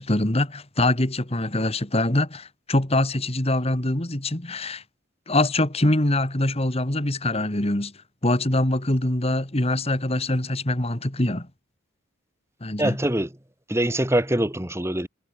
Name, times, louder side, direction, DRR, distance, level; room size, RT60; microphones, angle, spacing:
voice 1, 0.0-4.8 5.3-7.9 8.2-11.5 12.6-13.0, left 1 dB, 30° left, 2.2 m, -24 dB
voice 2, 12.8-13.3 13.7-15.1, right 1 dB, 15° right, 2.0 m, -23 dB
head